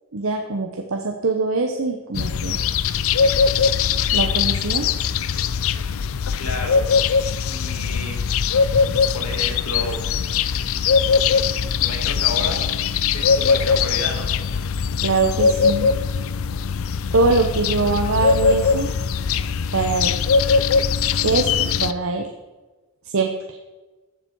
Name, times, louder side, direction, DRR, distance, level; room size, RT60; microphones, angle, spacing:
voice 1, 0.1-2.6 4.1-4.9 8.8-9.0 15.0-15.9 17.1-18.9 19.7-20.2 21.2-22.3 23.1-23.3, right 3 dB, 65° right, 3 dB, 0.9 m, -22 dB
sound 1, 2.1-21.9, left 6 dB, 65° left, 0.5 m, -21 dB
voice 2, 6.4-6.8 7.5-8.2 9.1-10.0 11.8-12.6 13.1-14.3, left 2 dB, 80° left, 2 dB, 2.5 m, -30 dB
14.5 x 7.3 x 4.6 m, 1.2 s
head